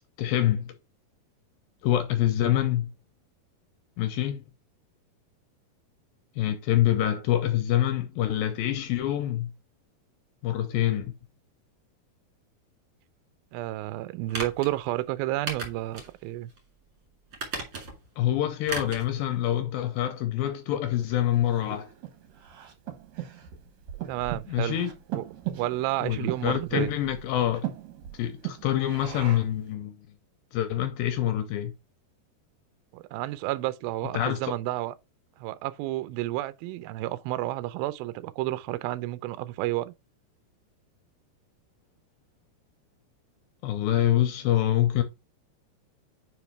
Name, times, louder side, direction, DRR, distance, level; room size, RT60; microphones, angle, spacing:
voice 1, 0.2-0.8 1.8-2.9 4.0-4.4 6.4-9.5 10.4-11.1 18.2-21.9 24.5-24.9 26.0-27.6 28.1-30.0 30.5-31.7 34.1-34.5 43.6-45.0, left 12 dB, 85° left, 2.2 m, -26 dB
voice 2, 13.5-16.5 24.1-24.8 25.1-27.0 32.9-34.9 35.4-39.9, right 16 dB, 85° right, 2.1 m, -31 dB
sound 1, 14.3-14.7 15.5-16.1 16.5-16.6 17.3-18.1 18.7-19.1 19.4-19.5, right 3 dB, 35° right, 2.1 m, -35 dB
Breathing, 21.1-29.6, right 12 dB, 65° right, 1.9 m, -38 dB
5.2 x 5.1 x 4.4 m
omnidirectional pair, 4.7 m